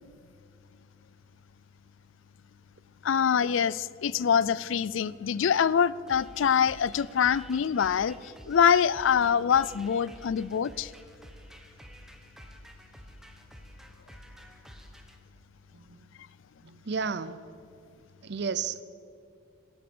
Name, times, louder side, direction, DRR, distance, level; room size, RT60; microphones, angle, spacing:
voice 1, 3.0-10.9, left 7 dB, 75° left, 20 dB, 0.4 m, -25 dB
sound 1, 6.1-15.2, equal, ahead, 0.9 m, -50 dB
voice 2, 15.7-16.1 16.6-17.4 18.2-18.8, right 5 dB, 55° right, 15 dB, 0.6 m, -33 dB
14.0 x 13.5 x 7.0 m, 2.5 s
head